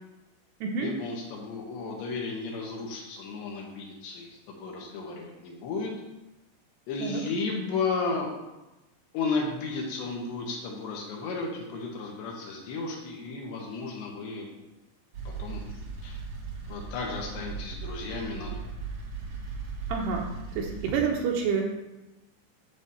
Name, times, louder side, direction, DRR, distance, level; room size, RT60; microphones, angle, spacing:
voice 1, 0.8-5.9 6.9-8.3 9.1-14.5 15.3-15.6 16.0-16.2 16.7-18.7, left 4 dB, 75° left, -1 dB, 3.3 m, -33 dB
sound 1, 15.1-20.9, right 4 dB, 55° right, 1.7 m, -38 dB
voice 2, 19.9-20.3 20.5-21.7, right 5 dB, 75° right, 0 dB, 2.7 m, -28 dB
11.0 x 4.1 x 7.1 m, 1.0 s
omnidirectional pair, 5.4 m